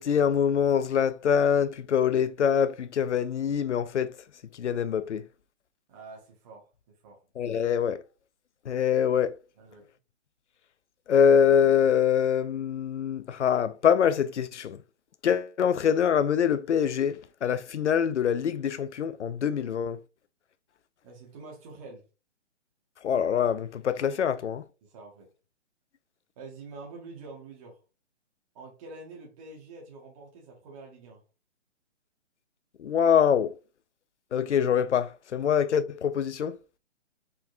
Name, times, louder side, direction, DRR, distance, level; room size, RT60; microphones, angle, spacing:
voice 1, 0.0-4.2 4.6-5.2 7.4-8.0 8.7-9.4 11.1-14.8 15.2-20.0 23.0-24.6 32.8-33.5 34.3-36.6, left 8 dB, 70° left, 0.6 m, -24 dB
voice 2, 5.9-7.2 9.6-9.9 21.0-22.0 24.1-24.4 24.8-25.3 26.4-27.8 28.5-31.2, right 3 dB, 30° right, 1.5 m, -46 dB
4.5 x 4.4 x 2.5 m
hypercardioid pair, 145°, 36 cm